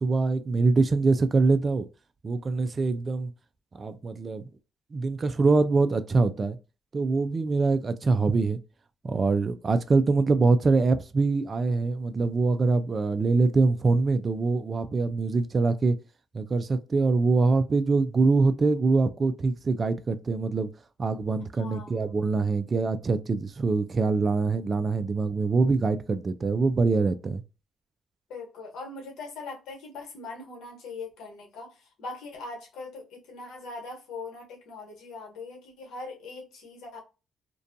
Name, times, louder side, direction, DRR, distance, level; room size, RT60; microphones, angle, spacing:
voice 1, 0.0-1.9 2.2-3.3 3.7-4.4 4.9-6.6 6.9-8.6 9.0-16.0 16.3-20.7 21.0-27.4, right 3 dB, 35° right, 0.3 m, -24 dB
voice 2, 21.5-22.1 28.3-37.0, left 3 dB, 85° left, 1.0 m, -41 dB
2.5 x 2.2 x 2.5 m
cardioid pair, 90°, 0 cm